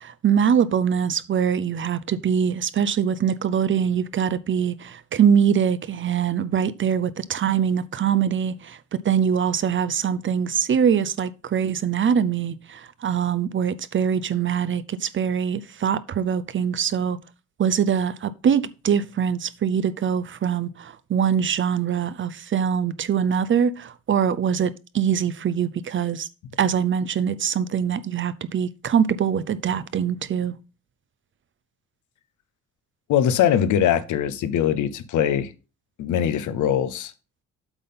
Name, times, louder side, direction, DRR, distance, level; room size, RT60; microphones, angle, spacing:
voice 1, 0.0-8.8 9.0-17.2 17.6-26.3 26.6-30.5, right 8 dB, 40° right, 0.6 m, -23 dB
voice 2, 33.1-35.5 36.0-37.1, left 9 dB, 75° left, 0.8 m, -22 dB
8.0 x 3.8 x 5.6 m
cardioid pair, 90°, 30 cm